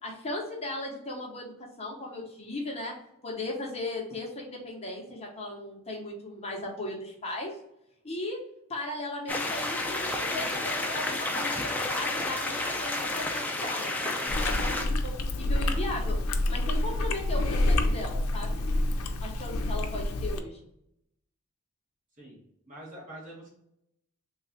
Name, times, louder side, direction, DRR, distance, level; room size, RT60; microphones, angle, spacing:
voice 1, 0.0-2.9 3.2-7.5 8.0-8.4 8.7-14.2 14.4-16.2 16.5-18.6 19.2-20.6, left 2 dB, 30° left, -2 dB, 0.8 m, -37 dB
sound 1, 9.3-14.8, left 2 dB, 10° left, 0.4 m, -31 dB
Chewing mastication, 14.3-20.4, left 1 dB, 90° left, 0.4 m, -28 dB
voice 2, 22.2-23.5, right 1 dB, 40° right, -4 dB, 1.2 m, -46 dB
3.2 x 2.3 x 3.9 m, 0.78 s
head